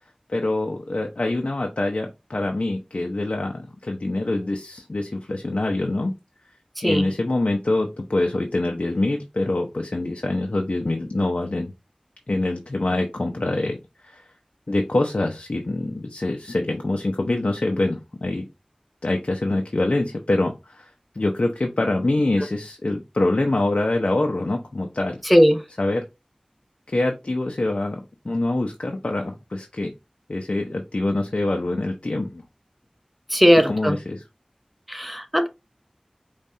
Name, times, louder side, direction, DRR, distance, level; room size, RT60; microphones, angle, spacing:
voice 1, 0.3-6.1 6.8-11.7 12.3-13.8 14.0-14.2 14.7-18.4 19.0-20.9 21.1-25.2 25.8-26.0 26.9-29.9 30.3-32.4 33.5-34.2, left 2 dB, 75° left, 0.7 m, -25 dB
voice 2, 25.3-25.6 33.3-34.0 34.9-35.5, equal, ahead, 0.7 m, -17 dB
5.2 x 3.2 x 2.8 m
wide cardioid pair, 45°, 2 cm